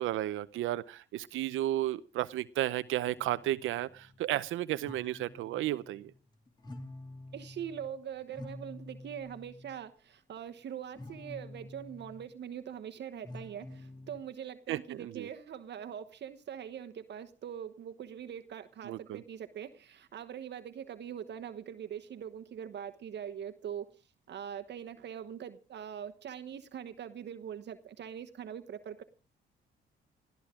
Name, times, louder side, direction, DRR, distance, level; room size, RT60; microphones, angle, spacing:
voice 1, 0.0-6.1 14.7-15.3 18.8-19.2, right 14 dB, 85° right, 0.7 m, -33 dB
sound 1, 3.0-4.6 4.8-6.2 6.5-9.8 10.9-12.3 13.2-14.2, left 2 dB, 20° left, 2.7 m, -49 dB
voice 2, 7.3-24.0 24.3-29.0, right 9 dB, 60° right, 1.1 m, -42 dB
20.0 x 13.5 x 3.7 m
cardioid pair, 90°, 20 cm